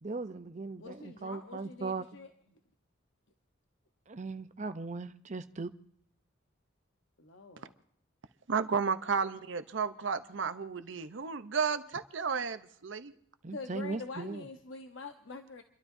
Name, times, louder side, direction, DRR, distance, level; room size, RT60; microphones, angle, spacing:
voice 1, 0.0-2.1 4.1-5.7 13.4-14.4, right 3 dB, 40° right, 10 dB, 0.7 m, -38 dB
voice 2, 0.8-2.3 7.2-7.7 13.5-15.6, left 3 dB, 80° left, 6 dB, 0.9 m, -45 dB
voice 3, 8.5-13.1, right 5 dB, 75° right, 11 dB, 0.7 m, -33 dB
30.0 x 12.5 x 2.7 m, 0.65 s
head